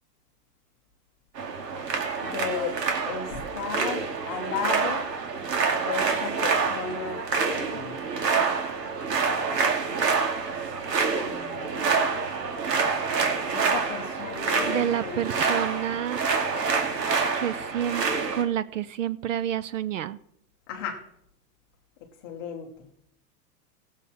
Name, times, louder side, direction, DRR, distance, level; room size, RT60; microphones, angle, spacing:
sound 1, 1.4-18.4, right 5 dB, 85° right, 2.4 m, -27 dB
voice 1, 2.2-2.8 3.0-5.1 5.8-7.9 11.2-12.2 13.5-15.2 20.7-21.0 22.2-22.7, left 6 dB, 15° left, 1 dB, 0.6 m, -35 dB
voice 2, 14.7-16.2 17.3-18.1 18.3-20.2, right 10 dB, 55° right, 17 dB, 0.6 m, -29 dB
18.0 x 7.1 x 4.2 m, 0.72 s
supercardioid pair, 175°, 48 cm